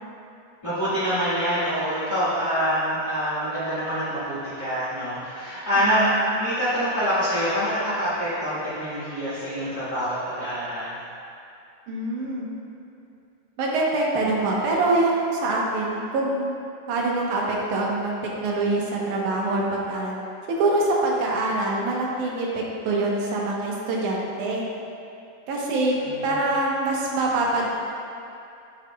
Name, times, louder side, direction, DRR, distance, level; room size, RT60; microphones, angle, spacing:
voice 1, 0.6-11.0 26.0-26.3, equal, 15° left, -14 dB, 1.1 m, -25 dB
voice 2, 5.8-6.3 11.9-12.5 13.6-16.5 16.9-18.1 18.4-20.2 20.5-22.5 22.9-24.6 25.5-27.7, right 2 dB, 75° right, -3 dB, 2.4 m, -24 dB
9.9 x 8.1 x 2.3 m, 2.6 s
omnidirectional pair, 3.7 m